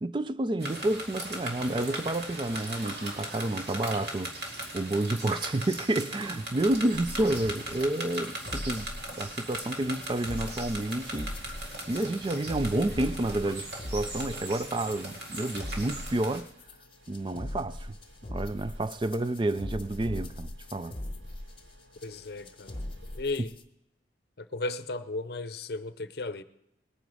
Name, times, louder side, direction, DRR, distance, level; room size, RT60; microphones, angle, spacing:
voice 1, 0.0-4.3 4.7-8.9 9.2-11.3 11.9-16.5 17.1-18.0 18.3-21.0 23.4-23.5, right 1 dB, 25° right, 0.4 m, -30 dB
sound 1, 0.6-16.4, right 1 dB, 60° right, 2.3 m, -39 dB
sound 2, 6.4-23.4, equal, 85° right, 1.7 m, -57 dB
sound 3, 6.9-23.6, left 1 dB, 30° left, 1.0 m, -41 dB
voice 2, 22.0-23.5 24.4-26.4, left 2 dB, 60° left, 0.7 m, -35 dB
20.0 x 9.0 x 4.9 m
head